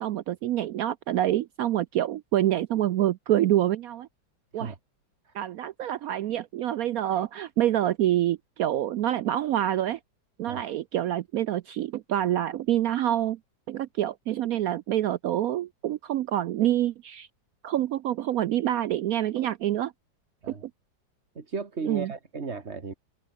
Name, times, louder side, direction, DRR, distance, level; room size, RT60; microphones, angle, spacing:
voice 1, 0.0-4.1 4.5-4.7 5.3-10.0 10.4-13.4 13.7-17.3 17.6-19.9 21.9-22.1, right 12 dB, 80° right, 0.8 m, -26 dB
voice 2, 21.4-22.9, right 4 dB, 35° right, 2.1 m, -35 dB
open air
omnidirectional pair, 2.0 m